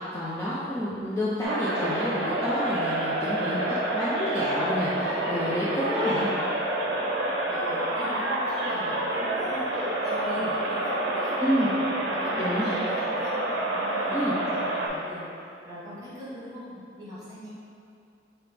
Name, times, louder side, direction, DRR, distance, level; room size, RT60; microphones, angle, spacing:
voice 1, 0.0-3.6 3.9-6.3 11.4-11.7 12.4-12.7 14.1-14.3, equal, 15° left, -10 dB, 0.5 m, -28 dB
voice 2, 0.8-1.1 7.5-11.7 12.1-17.5, equal, 20° right, -10 dB, 1.2 m, -41 dB
sound 1, 1.4-14.9, right 1 dB, 75° right, 0.6 m, -28 dB
5.4 x 2.9 x 3.4 m, 2.7 s
head